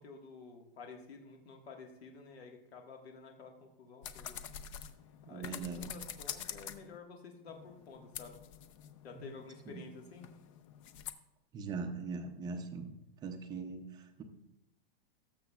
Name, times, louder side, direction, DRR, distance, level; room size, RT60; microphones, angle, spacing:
voice 1, 0.0-4.4 5.3-8.4 9.0-10.3, left 4 dB, 85° left, 2 dB, 1.7 m, -51 dB
sound 1, 4.0-7.0 7.5-11.1, left 9 dB, 35° left, 0.4 m, -47 dB
voice 2, 5.3-5.9 9.1-9.2 9.7-9.8 11.5-12.9 13.2-14.2, right 4 dB, 15° right, 5 dB, 0.5 m, -41 dB
18.5 x 6.8 x 2.3 m, 0.89 s
supercardioid pair, 160°, 30 cm